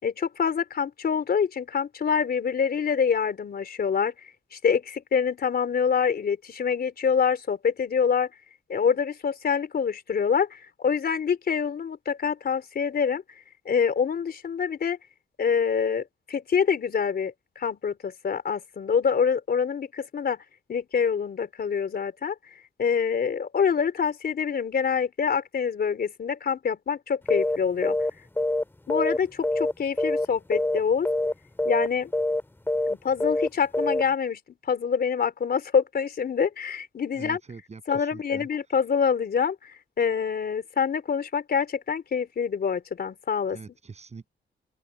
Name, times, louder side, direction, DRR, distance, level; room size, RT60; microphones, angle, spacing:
voice 1, 0.0-4.1 4.5-8.3 8.7-13.2 13.7-15.0 15.4-20.4 20.7-22.3 22.8-28.0 28.9-31.1 31.6-32.1 32.9-34.4 34.7-37.4 37.9-43.6, left 6 dB, 55° left, 3.9 m, -26 dB
sound 1, 27.3-27.6 27.8-28.1 28.4-29.7 30.0-30.3 30.5-30.8 31.0-31.3 31.6-31.9 32.1-32.4 32.7-32.9 33.2-33.5 33.7-34.0, left 1 dB, 10° left, 2.2 m, -25 dB
voice 2, 37.1-38.5 43.5-44.3, right 4 dB, 35° right, 7.9 m, -43 dB
open air
wide cardioid pair, 150°, 19 cm